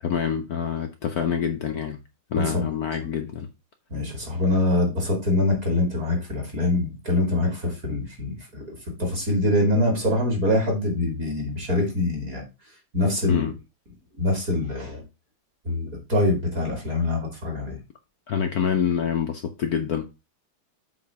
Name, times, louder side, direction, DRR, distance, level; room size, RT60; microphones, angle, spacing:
voice 1, 0.0-2.0 2.3-3.5 13.2-13.5 18.3-20.0, left 7 dB, 70° left, 0.9 m, -26 dB
voice 2, 2.4-2.7 3.9-8.6 9.0-12.4 12.9-13.4 14.1-15.0 15.6-17.8, left 1 dB, 40° right, 2.9 m, -24 dB
7.7 x 3.5 x 5.7 m
omnidirectional pair, 2.4 m